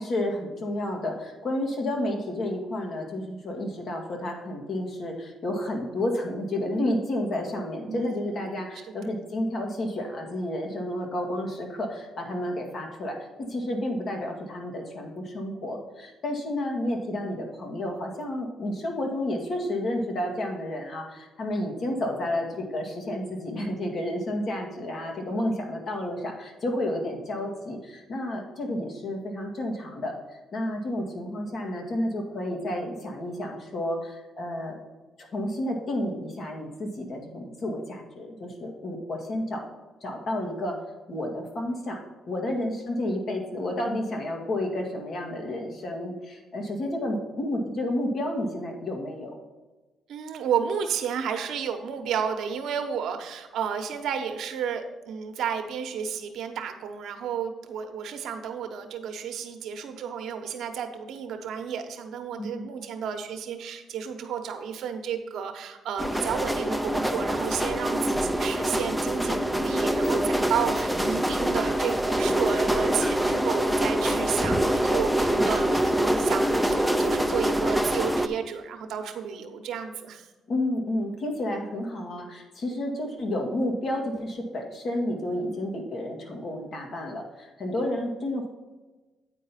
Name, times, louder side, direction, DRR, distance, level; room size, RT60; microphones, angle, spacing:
voice 1, 0.0-34.8 35.2-39.7 40.0-40.8 41.1-42.0 42.3-49.4 62.4-62.7 80.5-88.5, left 1 dB, 55° left, 2 dB, 1.9 m, -31 dB
voice 2, 7.9-8.4 8.9-9.2 50.1-80.3, right 7 dB, 75° right, 6 dB, 1.0 m, -32 dB
sound 1, 66.0-78.3, right 1 dB, ahead, 0.6 m, -25 dB
9.0 x 4.6 x 5.7 m, 1.2 s
cardioid pair, 90°, 0 cm